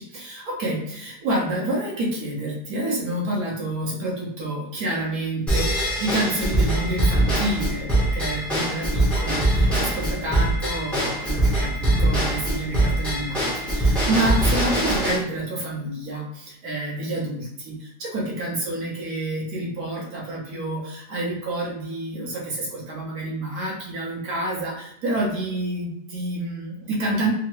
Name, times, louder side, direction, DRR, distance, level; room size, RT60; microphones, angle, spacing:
voice 1, 0.0-27.3, right 1 dB, 70° right, -3 dB, 1.4 m, -28 dB
Drum kit / Drum / Bell, 5.5-15.2, right 1 dB, ahead, 0.6 m, -22 dB
3.6 x 2.1 x 2.9 m, 0.75 s
omnidirectional pair, 1.7 m